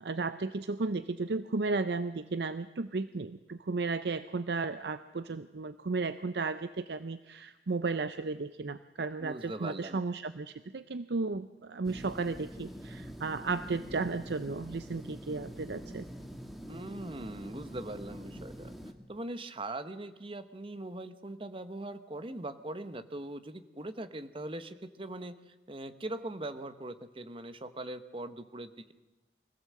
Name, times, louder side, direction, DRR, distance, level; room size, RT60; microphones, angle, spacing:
voice 1, 0.0-16.0, right 3 dB, 70° right, 12 dB, 0.6 m, -34 dB
voice 2, 9.2-10.0 16.7-18.7 19.1-28.9, right 1 dB, 30° right, 10 dB, 1.0 m, -41 dB
sound 1, 11.8-18.9, equal, ahead, 1.5 m, -45 dB
24.0 x 16.5 x 7.7 m, 1.1 s
head